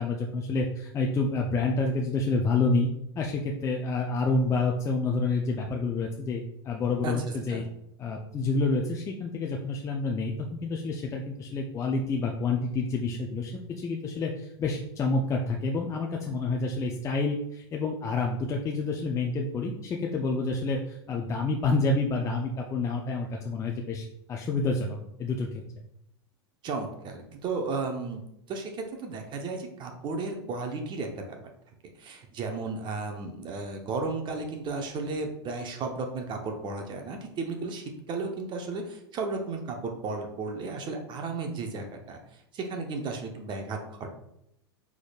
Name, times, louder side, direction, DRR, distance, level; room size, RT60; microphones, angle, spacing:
voice 1, 0.0-2.9 3.2-7.7 8.0-25.6, left 3 dB, 20° left, 1 dB, 0.5 m, -28 dB
voice 2, 26.6-28.2 28.5-31.4 32.0-44.1, right 3 dB, 35° right, 3 dB, 0.8 m, -34 dB
6.0 x 3.5 x 2.4 m, 0.79 s
hypercardioid pair, 95°, 14 cm